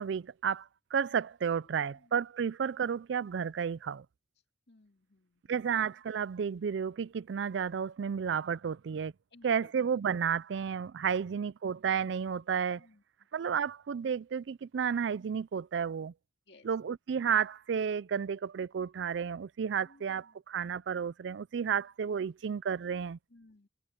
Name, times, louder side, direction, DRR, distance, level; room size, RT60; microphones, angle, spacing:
voice 1, 0.0-4.1 5.5-9.1 9.4-12.9 13.3-16.1 16.6-23.2, right 7 dB, 75° right, 0.4 m, -32 dB
voice 2, 1.6-2.1 4.7-5.5 9.3-9.7 12.8-13.0 16.5-16.9 19.8-20.4 23.3-23.7, left 2 dB, 65° left, 2.4 m, -61 dB
head